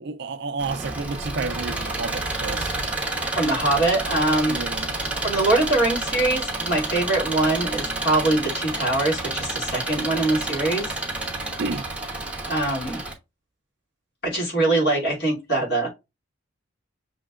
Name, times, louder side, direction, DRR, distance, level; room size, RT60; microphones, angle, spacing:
voice 1, 0.0-2.7 4.5-4.9 11.6-11.9, right 3 dB, 55° right, 0.5 m, -31 dB
Engine, 0.6-13.1, right 2 dB, 5° right, 1.0 m, -29 dB
voice 2, 3.3-4.5 5.2-10.9 12.4-13.0 14.2-15.9, right 2 dB, 50° left, 2.8 m, -23 dB
6.4 x 3.2 x 2.4 m
head